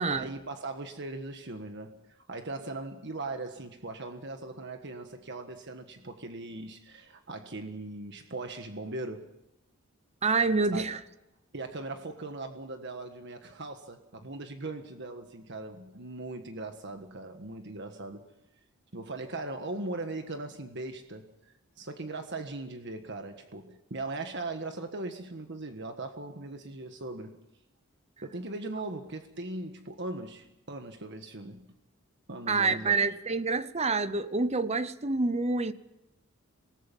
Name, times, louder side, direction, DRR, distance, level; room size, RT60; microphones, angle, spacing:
voice 1, 0.1-9.3 10.7-10.8 11.5-18.3 18.9-21.3 21.8-27.4 28.2-31.7 32.3-33.0, right 2 dB, 55° right, 1.5 m, -39 dB
voice 2, 10.2-11.0 32.5-35.7, right 3 dB, 30° right, 0.8 m, -27 dB
27.5 x 19.0 x 5.5 m
head